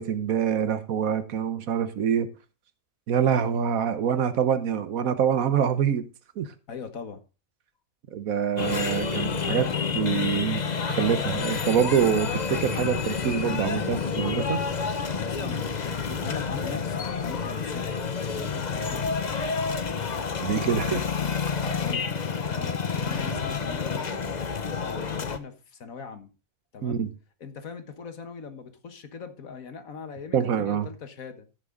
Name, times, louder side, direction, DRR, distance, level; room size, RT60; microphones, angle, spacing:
voice 1, 0.0-2.3 3.1-6.1 6.4-6.5 8.1-10.6 10.9-14.6 20.4-21.0 26.8-27.1 30.3-30.9, right 8 dB, 85° right, 1.4 m, -25 dB
voice 2, 6.7-7.2 15.2-18.1 18.3-19.3 20.6-24.2 24.8-26.3 26.7-27.0 27.4-31.5, left 5 dB, 80° left, 1.8 m, -41 dB
sound 1, 8.6-25.4, left 5 dB, 35° left, 0.9 m, -29 dB
14.5 x 6.7 x 3.8 m
omnidirectional pair, 1.4 m